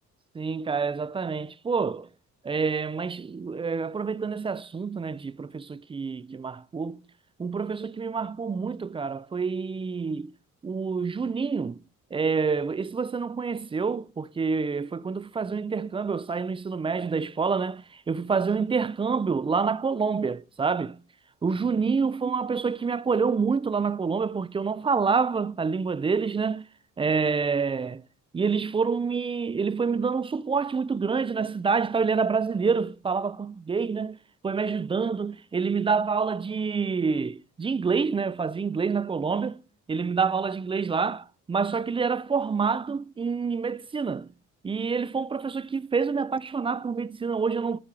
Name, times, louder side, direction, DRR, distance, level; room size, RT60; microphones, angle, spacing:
voice 1, 0.3-2.1 2.4-7.0 7.4-10.3 10.6-11.8 12.1-21.0 21.4-26.7 27.0-28.0 28.3-34.2 34.4-39.6 39.9-44.3 44.6-47.8, right 5 dB, 20° right, 0.3 m, -27 dB
8.5 x 4.3 x 4.7 m
cardioid pair, 90°, 30 cm